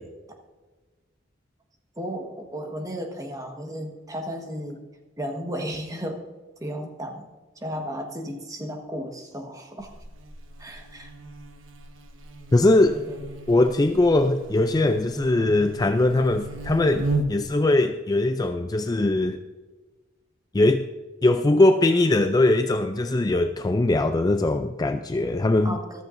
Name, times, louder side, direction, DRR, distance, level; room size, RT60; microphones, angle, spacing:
voice 1, 2.0-4.8 5.2-6.2 6.6-7.3 7.6-9.9 10.6-11.1 12.9-13.2 13.5-13.7 25.6-26.0, equal, 15° right, 3 dB, 1.3 m, -34 dB
Buzz, 9.8-17.6, right 2 dB, 80° right, 1.2 m, -35 dB
voice 2, 12.5-13.0 13.5-19.4 20.5-20.8 21.2-25.8, left 2 dB, 20° left, 8 dB, 0.4 m, -21 dB
14.0 x 13.5 x 2.6 m, 1.2 s
head